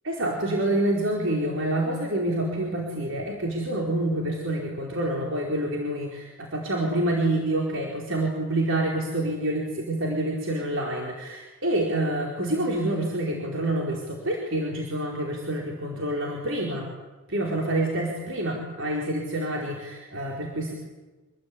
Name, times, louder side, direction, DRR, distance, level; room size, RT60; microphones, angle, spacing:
voice 1, 0.0-16.9 17.3-20.7, right 1 dB, 65° right, -1 dB, 4.7 m, -27 dB
27.0 x 21.0 x 9.9 m, 1.2 s
head